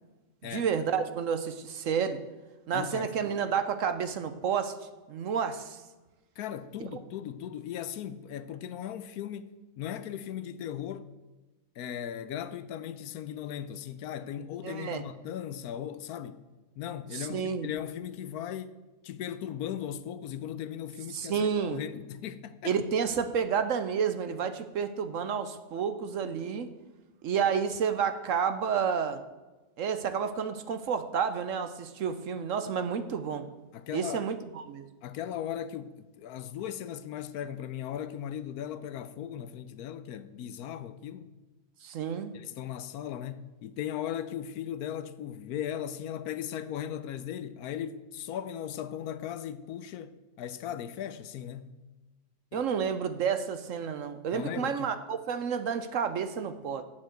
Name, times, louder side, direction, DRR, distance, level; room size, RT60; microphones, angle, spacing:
voice 1, 0.5-2.2 2.7-4.7 5.1-5.8 6.8-6.9 14.6-15.0 17.1-17.7 21.1-21.8 22.6-26.7 27.2-29.2 29.8-33.5 33.9-34.9 41.8-42.3 52.5-56.8, right 7 dB, 60° right, 0.9 m, -30 dB
voice 2, 2.7-3.3 6.4-11.1 11.8-16.4 16.8-18.8 19.0-22.8 33.7-34.3 35.0-41.3 42.3-51.8 52.5-52.7 54.3-54.9, left 10 dB, 75° left, 1.1 m, -38 dB
9.2 x 7.3 x 7.8 m
omnidirectional pair, 1.7 m